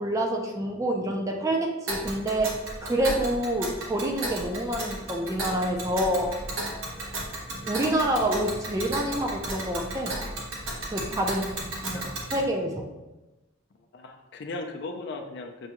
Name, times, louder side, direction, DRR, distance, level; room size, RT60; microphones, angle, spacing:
voice 1, 0.0-6.3 7.7-10.1 10.9-12.0 12.3-12.9, right 1 dB, 15° right, 1 dB, 0.4 m, -27 dB
Tick, 1.9-12.4, right 1 dB, 85° right, 0.9 m, -35 dB
voice 2, 11.8-12.2 13.9-15.7, left 2 dB, 60° left, 4 dB, 0.4 m, -37 dB
6.0 x 2.3 x 2.9 m, 1.1 s
head